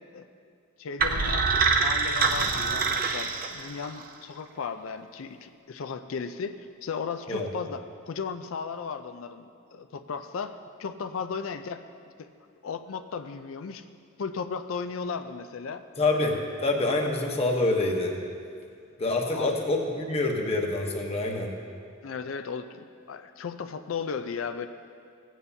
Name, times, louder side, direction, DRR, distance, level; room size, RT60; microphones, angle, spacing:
voice 1, 0.8-11.8 12.2-12.3 12.6-13.8 14.2-15.8 19.3-19.6 22.0-24.7, left 5 dB, 75° left, 9 dB, 0.4 m, -35 dB
sound 1, 1.0-4.0, right 5 dB, 45° right, 0.6 m, -25 dB
voice 2, 16.0-16.3 16.6-18.1 19.0-21.5, left 2 dB, 30° left, 1 dB, 1.0 m, -26 dB
16.0 x 9.1 x 2.7 m, 2.4 s
head